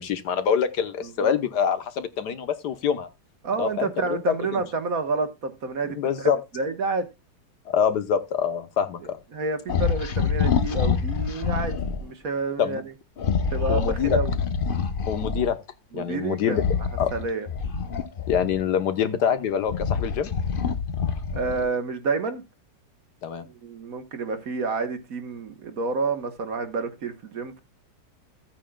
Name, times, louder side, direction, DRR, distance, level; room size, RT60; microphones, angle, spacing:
voice 1, 0.0-3.1 3.6-4.3 6.0-6.4 7.7-9.2 12.6-12.8 13.7-14.2 15.1-15.6 15.9-16.6 17.0-17.1 18.3-20.3 23.2-23.4, left 8 dB, 70° left, 1.5 m, -25 dB
voice 2, 3.4-7.1 9.3-12.8 13.5-14.3 15.9-16.7 17.1-17.5 21.3-22.4 23.4-27.6, right 3 dB, 55° right, 1.6 m, -29 dB
sound 1, 9.7-12.0 13.2-15.5 16.5-18.8 19.4-21.7, left 6 dB, 50° left, 0.6 m, -26 dB
14.5 x 8.7 x 2.2 m
omnidirectional pair, 1.9 m